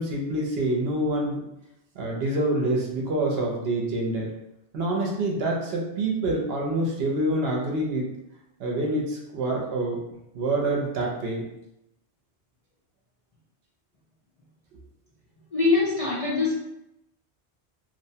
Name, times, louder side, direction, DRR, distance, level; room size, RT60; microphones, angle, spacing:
voice 1, 0.0-1.4 2.0-4.3 4.7-8.1 8.6-10.0 10.3-11.4, right 2 dB, 65° right, -2 dB, 0.8 m, -26 dB
voice 2, 15.5-16.5, left 4 dB, 45° left, -7 dB, 0.5 m, -23 dB
2.8 x 2.1 x 2.7 m, 0.86 s
omnidirectional pair, 1.2 m